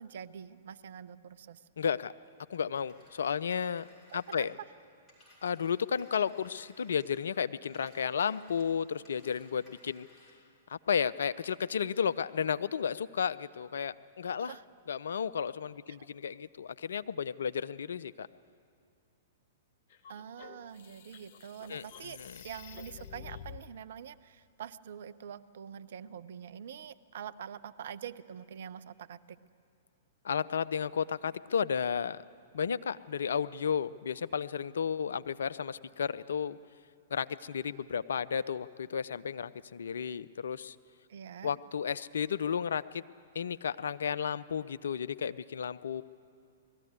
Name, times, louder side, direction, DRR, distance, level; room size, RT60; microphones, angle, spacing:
voice 1, 0.0-1.6 4.1-4.5 14.4-14.6 15.9-16.1 20.1-29.4 41.1-41.5, right 8 dB, 60° right, 16 dB, 0.6 m, -45 dB
voice 2, 1.8-2.1 2.5-3.9 4.1-4.5 5.4-10.1 10.7-14.5 14.9-18.3 21.7-21.8 22.2-22.4 30.2-32.2 32.5-36.6 37.1-40.8 41.4-43.0 43.3-46.0, left 7 dB, 65° left, 14 dB, 0.5 m, -33 dB
Telephone, 2.5-7.3 7.6-10.5, equal, 20° left, 6.4 m, -61 dB
sound 1, 19.9-23.7, left 8 dB, 50° left, 1.0 m, -49 dB
19.5 x 14.5 x 9.6 m, 2.2 s
figure-of-eight pair, 110°, 0 cm